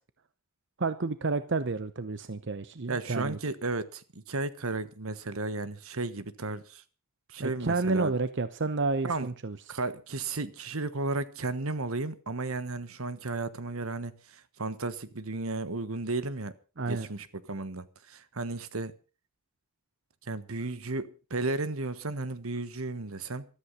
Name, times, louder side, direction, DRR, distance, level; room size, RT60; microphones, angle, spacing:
voice 1, 0.8-3.4 7.4-9.6 16.8-17.1, right 3 dB, 55° right, 0.8 m, -30 dB
voice 2, 2.9-6.8 7.3-8.1 9.0-9.3 9.7-16.5 16.9-18.9 20.3-23.5, right 3 dB, 75° right, 1.3 m, -34 dB
14.0 x 13.5 x 5.5 m
head